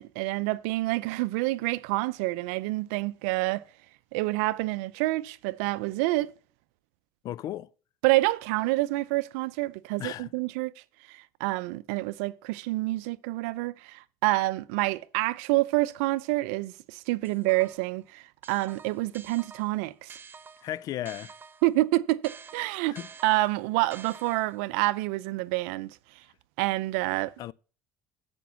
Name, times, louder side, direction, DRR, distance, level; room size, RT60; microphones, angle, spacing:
voice 1, 0.0-3.6 4.1-6.3 8.0-10.7 11.1-20.2 21.6-23.0 23.2-26.2 26.6-27.3, right 20 dB, 85° right, 0.5 m, -28 dB
voice 2, 7.2-7.7 10.0-10.3 20.6-21.3 22.9-23.1 27.4-27.5, left 12 dB, 55° left, 0.4 m, -35 dB
sound 1, 17.2-18.0 18.4-21.8 22.2-24.7, right 6 dB, 30° right, 0.6 m, -49 dB
8.4 x 5.3 x 7.1 m
supercardioid pair, 95°, 7 cm